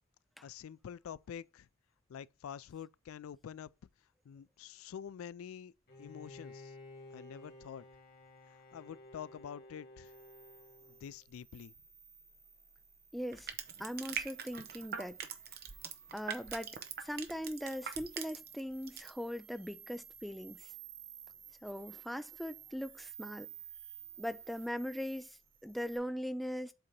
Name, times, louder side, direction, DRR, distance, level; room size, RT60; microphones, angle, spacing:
voice 1, 0.4-1.7 2.1-3.7 4.2-5.7 6.0-6.8 7.1-7.8 8.5-10.1 10.9-11.7, left 8 dB, 80° left, 0.3 m, -47 dB
Bowed string instrument, 5.9-11.5, left 2 dB, 50° left, 2.0 m, -54 dB
sound 1, 10.0-26.0, right 9 dB, 90° right, 3.6 m, -55 dB
voice 2, 13.1-13.5 13.8-15.2 16.1-20.7 21.6-23.5 24.2-26.7, equal, ahead, 0.4 m, -40 dB
Crushing, 13.3-18.6 18.9-19.1, right 7 dB, 50° right, 0.9 m, -42 dB
7.8 x 2.9 x 5.3 m
head